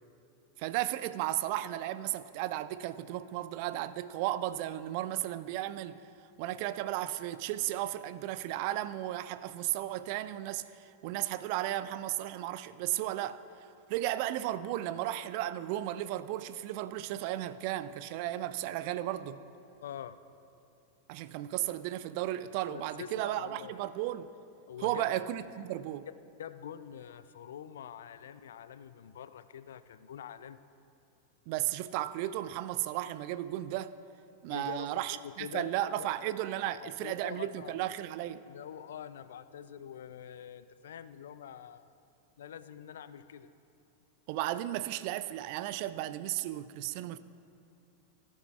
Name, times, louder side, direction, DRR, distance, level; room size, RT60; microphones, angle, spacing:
voice 1, 0.6-6.0 6.4-13.4 13.9-19.4 21.1-24.3 24.8-26.1 31.5-33.9 34.4-38.4 44.3-47.2, right 14 dB, 45° right, 0.3 m, -34 dB
voice 2, 19.8-20.2 22.7-23.8 24.7-25.0 26.4-30.6 34.5-35.7 36.0-36.1 36.8-37.8 38.5-41.9 42.4-43.5, left 9 dB, 60° left, 0.3 m, -45 dB
16.0 x 9.7 x 2.4 m
figure-of-eight pair, 90°, 0 cm